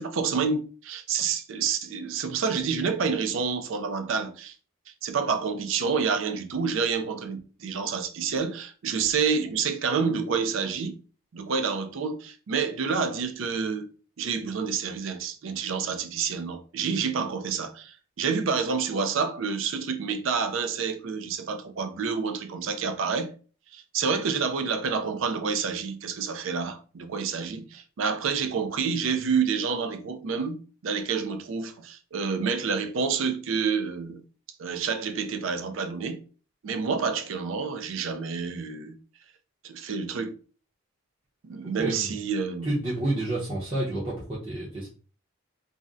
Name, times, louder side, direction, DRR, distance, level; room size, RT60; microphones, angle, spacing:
voice 1, 0.0-4.5 5.0-11.0 11.3-13.9 14.2-23.3 23.7-34.2 34.6-36.2 36.6-39.0 39.6-40.4 41.4-42.7, right 5 dB, 70° right, 0.4 m, -28 dB
voice 2, 41.8-42.2 42.6-44.9, right 1 dB, 25° right, 0.7 m, -29 dB
2.6 x 2.1 x 3.6 m
head